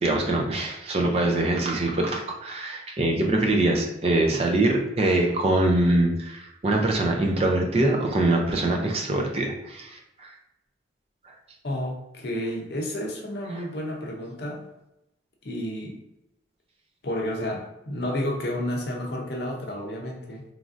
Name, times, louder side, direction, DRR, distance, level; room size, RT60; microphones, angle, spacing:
voice 1, 0.0-10.3, right 2 dB, 30° right, 1 dB, 0.4 m, -23 dB
voice 2, 11.6-14.7 15.4-16.0 17.0-20.4, left 1 dB, 55° left, 1 dB, 0.5 m, -31 dB
3.1 x 2.5 x 2.5 m, 0.87 s
head